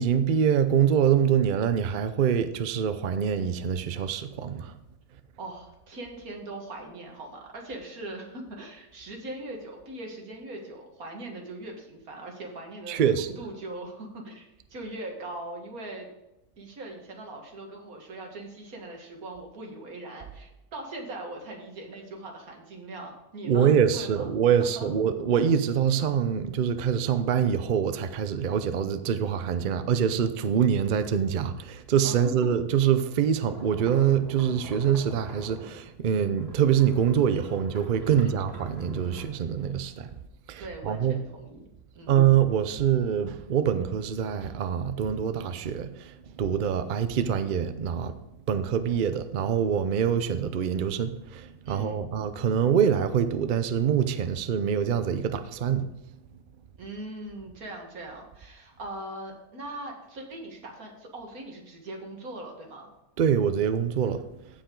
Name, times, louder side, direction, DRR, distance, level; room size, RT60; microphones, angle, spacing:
voice 1, 0.0-4.7 12.9-13.3 23.4-40.1 40.5-41.1 42.1-48.1 48.5-55.9 63.2-64.2, right 8 dB, 85° right, 0.4 m, -25 dB
voice 2, 5.4-16.1 16.6-24.3 24.8-24.9 32.0-32.5 38.1-38.4 40.6-41.7 41.9-42.2 51.7-52.1 56.8-62.9, right 2 dB, 60° right, 2.2 m, -40 dB
sound 1, 33.5-35.9 36.3-39.2, equal, 15° right, 3.6 m, -43 dB
15.5 x 5.2 x 3.8 m
omnidirectional pair, 1.7 m